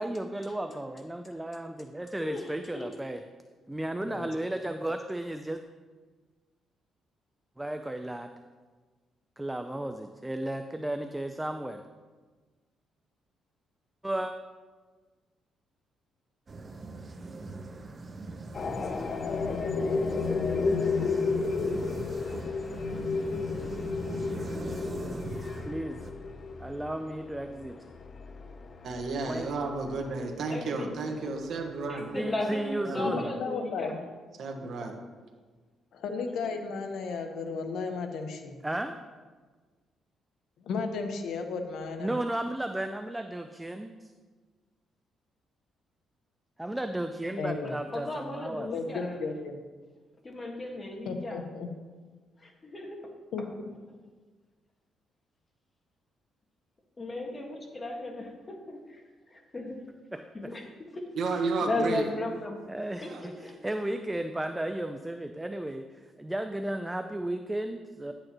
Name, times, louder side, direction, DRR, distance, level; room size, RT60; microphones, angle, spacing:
voice 1, 0.0-3.2 3.7-5.6 7.6-8.3 9.4-11.9 14.0-14.3 25.6-26.0 26.6-27.8 29.3-29.5 32.1-33.2 38.6-39.0 42.0-44.1 46.6-48.7 60.1-60.2 62.7-68.1, right 1 dB, 10° right, 7 dB, 0.4 m, -34 dB
voice 2, 2.1-2.9 30.5-30.9 31.9-33.9 36.3-36.5 47.6-49.2 50.2-51.4 52.4-53.0 57.0-59.0 59.3-59.8 60.3-60.6 60.9-61.0 61.6-62.6 63.0-63.5, left 2 dB, 25° left, 1 dB, 1.6 m, -36 dB
sound 1, 16.5-26.1, right 3 dB, 35° right, 0.8 m, -41 dB
sound 2, 18.5-30.2, left 4 dB, 45° left, 0.6 m, -32 dB
voice 3, 28.8-32.1 32.8-33.3 34.4-34.9 61.2-62.1 63.0-63.2, right 3 dB, 65° right, 3 dB, 1.3 m, -32 dB
voice 4, 33.0-34.0 35.9-38.6 40.6-42.1 47.4-47.7 48.7-49.6 51.0-51.7 53.3-53.4, left 4 dB, 75° left, 5 dB, 1.0 m, -34 dB
10.5 x 8.8 x 3.0 m, 1.4 s
cardioid pair, 90°, 0 cm